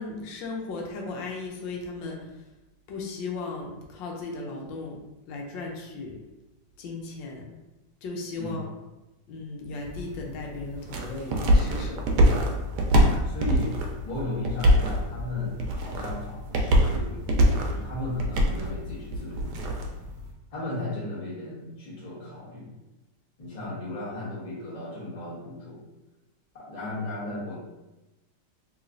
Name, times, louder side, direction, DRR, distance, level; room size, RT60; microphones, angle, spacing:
voice 1, 0.0-2.5 2.9-5.0 5.3-6.2 6.8-7.6 8.0-8.7 9.3-12.1, left 3 dB, 85° left, 0 dB, 1.3 m, -36 dB
sound 1, 9.8-20.3, equal, 75° right, 1.1 m, -25 dB
voice 2, 13.1-13.8 14.0-19.8 20.5-22.7 23.4-25.8 26.5-27.5, left 2 dB, 30° left, -8 dB, 0.9 m, -35 dB
3.0 x 3.0 x 2.5 m, 1.0 s
omnidirectional pair, 2.0 m